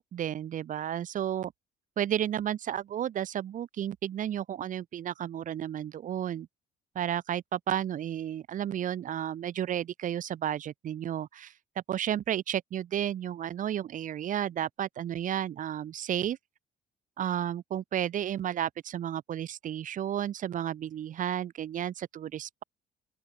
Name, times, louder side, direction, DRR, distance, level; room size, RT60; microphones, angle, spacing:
voice 1, 0.1-1.5 2.0-6.5 6.9-11.5 11.9-16.4 17.2-22.6, right 10 dB, 50° right, 1.1 m, -32 dB
open air
cardioid pair, 110°, 17 cm